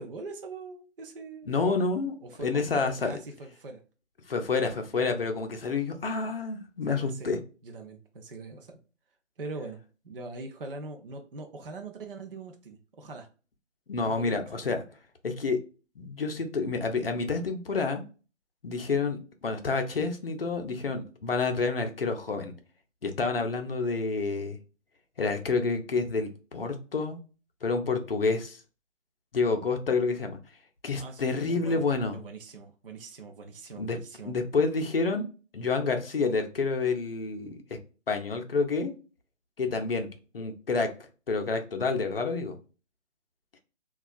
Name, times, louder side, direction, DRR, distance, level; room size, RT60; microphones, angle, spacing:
voice 1, 0.0-1.5 2.2-3.8 6.9-8.8 9.4-9.8 10.0-13.3 14.1-14.3 31.0-31.8 32.1-34.3, right 3 dB, 45° right, 3 dB, 0.5 m, -42 dB
voice 2, 1.5-3.1 4.3-7.4 13.9-14.8 15.2-15.6 16.0-18.0 18.6-22.5 23.0-24.6 25.2-27.2 27.6-28.6 29.3-30.4 30.8-32.2 33.8-34.0 34.2-35.2 35.5-37.8 38.1-38.9 39.6-40.1 40.3-40.9 41.3-42.6, left 4 dB, 50° left, 5 dB, 0.6 m, -28 dB
3.9 x 2.3 x 2.2 m, 0.35 s
figure-of-eight pair, 150°, 38 cm